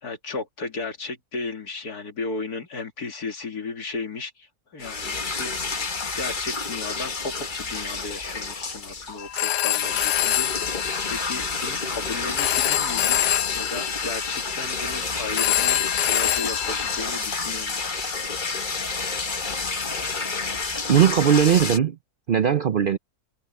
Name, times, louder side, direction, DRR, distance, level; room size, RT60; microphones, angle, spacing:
voice 1, 0.0-5.6 6.1-10.5 11.1-17.9, left 3 dB, 70° left, 2.9 m, -35 dB
sound 1, 4.8-21.8, left 4 dB, 35° left, 1.4 m, -29 dB
Telephone, 9.2-17.0, left 13 dB, 85° left, 1.4 m, -26 dB
voice 2, 20.9-22.0 22.3-23.0, right 8 dB, 80° right, 0.4 m, -19 dB
omnidirectional pair, 1.7 m